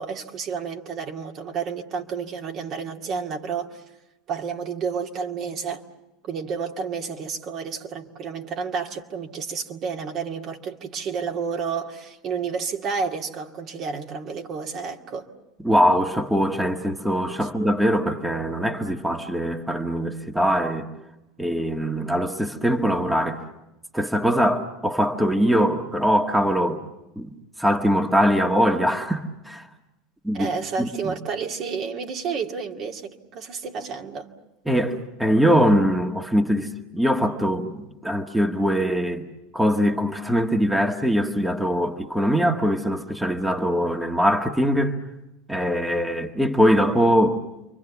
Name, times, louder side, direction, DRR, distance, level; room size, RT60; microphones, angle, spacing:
voice 1, 0.0-3.8 4.3-5.8 6.2-15.3 17.4-17.5 30.3-34.3, right 5 dB, 45° right, 2.3 m, -30 dB
voice 2, 15.6-20.9 21.4-23.4 23.9-26.8 27.2-29.7 30.2-30.5 30.8-31.1 34.7-39.3 39.5-45.0 45.5-47.4, equal, 5° right, 1.8 m, -22 dB
29.0 x 24.0 x 7.1 m
hypercardioid pair, 85°, 0 cm